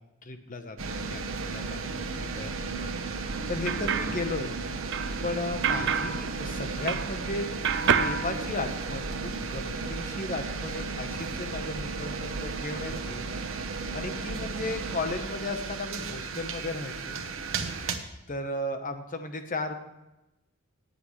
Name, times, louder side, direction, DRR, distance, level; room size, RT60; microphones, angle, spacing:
voice 1, 0.2-2.9 3.2-4.5 5.2-7.5 8.0-13.2 13.5-17.2 18.3-19.7, left 2 dB, 40° left, 7 dB, 1.1 m, -35 dB
sound 1, 0.8-18.0, right 4 dB, 80° right, 1.1 m, -34 dB
sound 2, 3.3-7.3 7.6-9.1, right 6 dB, 60° right, 0.6 m, -30 dB
18.5 x 8.1 x 3.2 m, 0.95 s
head